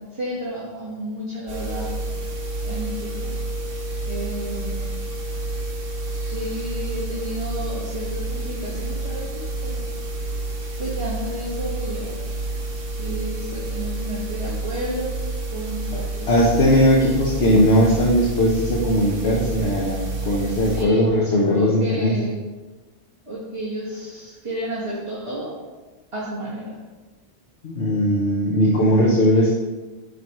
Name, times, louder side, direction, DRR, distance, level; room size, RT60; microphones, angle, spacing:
voice 1, 0.1-1.9 2.6-3.4 4.1-4.9 6.2-9.9 10.8-12.5 13.0-15.1 15.5-16.5 20.6-21.0 21.5-22.4 23.2-25.5 26.1-26.7 28.7-29.5, right 1 dB, 30° right, -8 dB, 1.5 m, -31 dB
sound 1, 1.5-20.8, right 2 dB, 60° right, 1.2 m, -29 dB
voice 2, 16.3-22.1 27.6-29.5, equal, 80° left, -3 dB, 1.2 m, -18 dB
9.1 x 5.0 x 3.0 m, 1.2 s
omnidirectional pair, 1.1 m